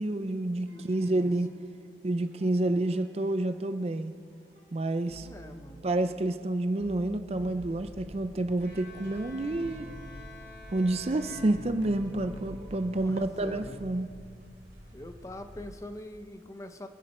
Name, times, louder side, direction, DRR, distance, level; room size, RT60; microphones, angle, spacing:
voice 1, 0.0-1.5 2.0-4.1 4.7-5.3 5.8-9.9 10.7-14.1, right 2 dB, 35° right, 10 dB, 0.5 m, -29 dB
voice 2, 0.6-1.4 5.1-5.9 13.0-13.8 14.9-16.9, left 1 dB, 20° left, 7 dB, 0.7 m, -44 dB
sound 1, 0.7-1.9 2.3-4.2 4.6-6.5 6.8-14.0, equal, 80° right, 1.8 m, -50 dB
sound 2, 7.3-15.8, equal, 50° right, 3.2 m, -50 dB
Bowed string instrument, 8.6-12.3, left 2 dB, 60° left, 3.0 m, -50 dB
25.0 x 10.0 x 4.3 m, 2.1 s
head